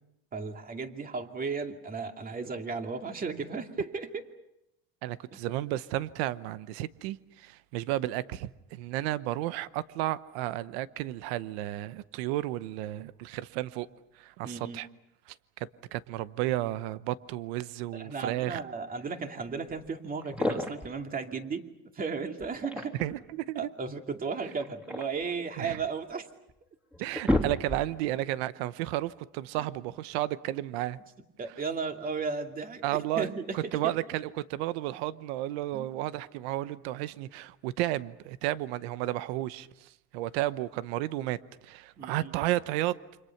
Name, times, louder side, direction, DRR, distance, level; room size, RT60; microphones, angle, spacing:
voice 1, 0.3-4.3 5.3-5.4 14.4-14.9 17.9-21.7 21.9-23.0 23.5-26.3 31.4-33.6 33.8-34.0 35.7-35.9 42.0-42.3, right 5 dB, 30° right, 2.5 m, -35 dB
voice 2, 5.0-13.9 14.2-14.9 15.6-18.6 23.0-23.7 25.6-25.8 27.0-31.0 32.8-43.0, right 15 dB, 85° right, 1.0 m, -33 dB
sound 1, 19.8-19.9 20.2-21.0 22.4-23.2 24.5-25.9 26.5-26.6 26.9-28.1, left 1 dB, 5° right, 3.0 m, -31 dB
29.0 x 26.0 x 5.9 m
cardioid pair, 120°, 31 cm